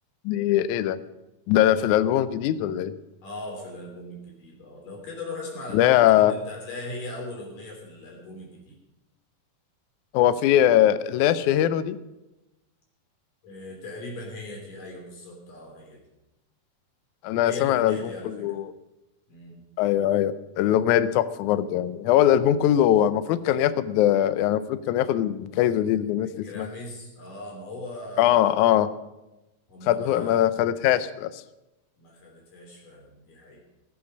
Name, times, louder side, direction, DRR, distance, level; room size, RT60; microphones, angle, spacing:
voice 1, 0.2-1.0 1.5-2.9 5.7-6.3 10.1-12.0 17.2-18.1 18.4-18.7 19.8-26.7 28.2-28.9 29.9-31.3, left 11 dB, 90° left, 14 dB, 1.7 m, -21 dB
voice 2, 3.2-8.8 13.4-16.0 17.4-18.5 19.3-19.6 26.2-28.4 29.7-30.5 32.0-33.6, left 2 dB, 60° left, -1 dB, 4.9 m, -39 dB
19.0 x 8.5 x 5.3 m, 1.0 s
omnidirectional pair, 4.2 m